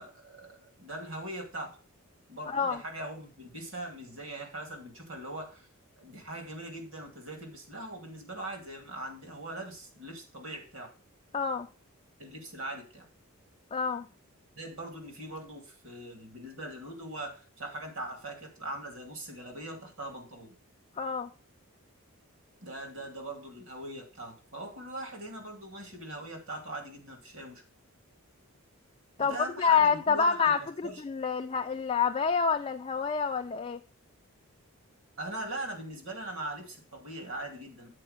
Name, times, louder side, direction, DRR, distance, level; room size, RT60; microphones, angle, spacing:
voice 1, 0.0-1.8 2.3-5.7 6.0-10.9 12.2-13.1 14.6-20.5 22.6-27.6 29.2-31.0 35.2-37.9, right 1 dB, 60° right, 4 dB, 2.1 m, -41 dB
voice 2, 2.5-2.8 11.3-11.7 13.7-14.1 21.0-21.3 29.2-33.8, left 6 dB, 25° left, 4 dB, 0.3 m, -27 dB
7.6 x 4.3 x 6.4 m, 0.36 s
head